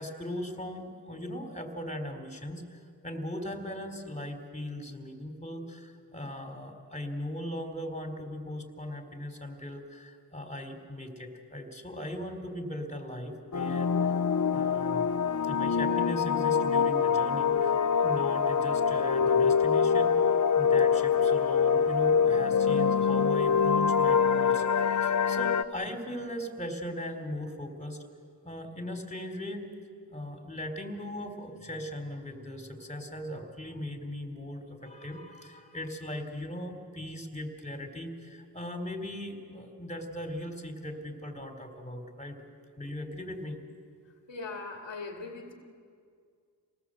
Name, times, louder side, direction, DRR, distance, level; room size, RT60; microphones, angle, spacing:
voice 1, 0.0-14.1 14.5-15.1 15.5-20.2 20.6-24.6 25.0-28.0 28.4-29.7 30.1-43.6, left 1 dB, 15° left, 5 dB, 3.8 m, -39 dB
sound 1, 13.5-25.6, left 6 dB, 45° left, 1.0 m, -25 dB
voice 2, 44.3-45.5, left 3 dB, 85° left, 2 dB, 2.6 m, -39 dB
27.0 x 19.0 x 7.8 m, 2.2 s
cardioid pair, 40°, 43 cm